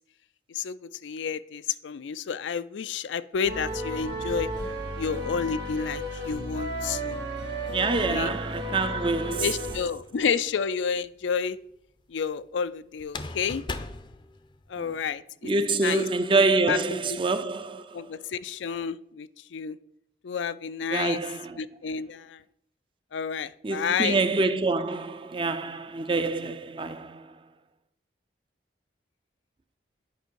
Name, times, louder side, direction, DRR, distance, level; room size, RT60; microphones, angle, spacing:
voice 1, 0.5-4.5 5.0-7.2 8.1-8.3 9.2-11.6 12.1-13.6 14.7-15.5 15.8-16.1 16.3-16.4 16.7-17.2 17.9-19.8 20.2-21.2 21.6-22.4 23.1-24.2, left 6 dB, 90° left, 0.4 m, -30 dB
sound 1, 3.4-9.8, equal, 75° right, 1.9 m, -33 dB
voice 2, 7.7-9.5 14.8-14.9 15.4-18.1 20.9-21.6 23.6-27.4, right 3 dB, 25° right, 0.4 m, -26 dB
sound 2, 9.9-10.6 13.0-15.0, left 3 dB, 25° left, 0.5 m, -38 dB
9.3 x 5.4 x 4.5 m
head